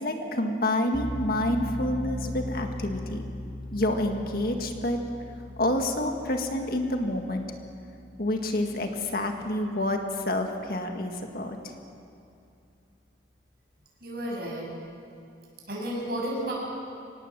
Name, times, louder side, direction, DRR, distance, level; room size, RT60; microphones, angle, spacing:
voice 1, 0.0-3.2 3.7-5.0 5.6-7.4 8.2-11.7, left 1 dB, 50° left, 4 dB, 1.8 m, -28 dB
sound 1, 0.9-9.8, left 1 dB, 5° right, 7.2 m, -39 dB
voice 2, 14.0-14.7 15.7-16.5, equal, 55° right, -2 dB, 7.0 m, -32 dB
25.0 x 19.0 x 7.5 m, 2.5 s
head